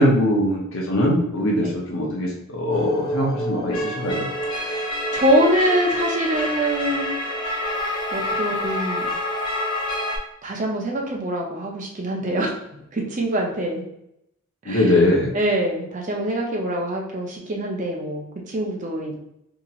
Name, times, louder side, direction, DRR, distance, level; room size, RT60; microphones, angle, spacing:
voice 1, 0.0-4.3 14.7-15.3, left 1 dB, 65° left, -2 dB, 0.6 m, -21 dB
sound 1, 2.7-10.2, left 1 dB, 20° left, 0.6 m, -27 dB
voice 2, 4.5-7.1 8.1-9.1 10.4-12.5 12.9-13.8 14.7-14.9 15.3-19.2, right 1 dB, 35° right, -1 dB, 0.5 m, -24 dB
2.8 x 2.8 x 2.4 m, 0.81 s
head